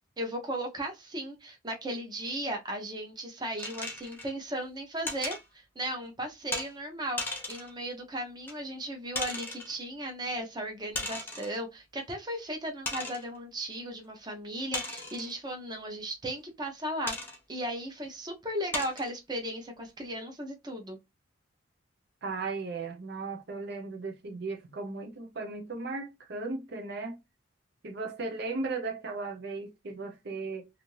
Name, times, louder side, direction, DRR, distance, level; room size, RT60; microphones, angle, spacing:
voice 1, 0.2-5.4 5.8-17.1 17.5-21.0, right 1 dB, 20° right, 0.7 m, -36 dB
sound 1, 3.6-4.3 5.1-5.4 6.5-6.7 7.2-7.7 8.5-8.6 9.1-9.7 10.9-11.6 12.1-12.2 12.9-13.3 14.7-15.3 17.1-17.4 18.0-18.1 18.7-19.1, left 2 dB, 10° left, 0.7 m, -36 dB
voice 2, 22.2-27.2 27.8-30.7, right 3 dB, 55° right, 0.5 m, -36 dB
2.6 x 2.5 x 3.0 m
head